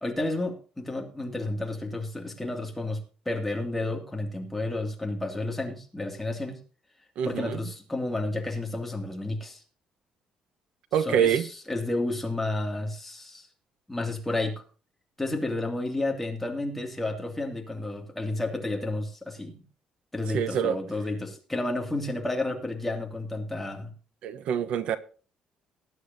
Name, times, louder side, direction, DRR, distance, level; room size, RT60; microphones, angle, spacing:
voice 1, 0.0-6.6 7.2-9.6 10.9-13.5 13.9-14.6 15.2-19.6 20.1-23.9, left 2 dB, 5° left, 2.4 m, -31 dB
voice 2, 7.2-7.6 10.9-11.5 20.3-20.8 24.2-25.0, right 9 dB, 65° right, 1.0 m, -25 dB
19.5 x 9.8 x 2.7 m
cardioid pair, 165°, 2 cm